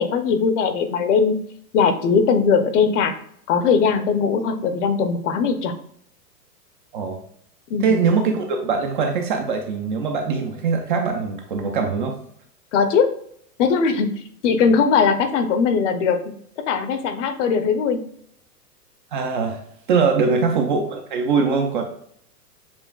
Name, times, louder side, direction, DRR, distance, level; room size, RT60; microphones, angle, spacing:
voice 1, 0.0-1.4 1.7-3.1 3.5-5.7 7.7-7.9 12.7-13.1 13.6-14.1 14.4-16.2 16.7-18.0 20.2-20.4, left 5 dB, 50° left, 8 dB, 0.7 m, -19 dB
voice 2, 7.8-12.2 19.1-19.6 19.9-21.8, right 5 dB, 35° right, 3 dB, 0.4 m, -22 dB
7.0 x 2.4 x 2.3 m, 0.66 s
hypercardioid pair, 115°, 48 cm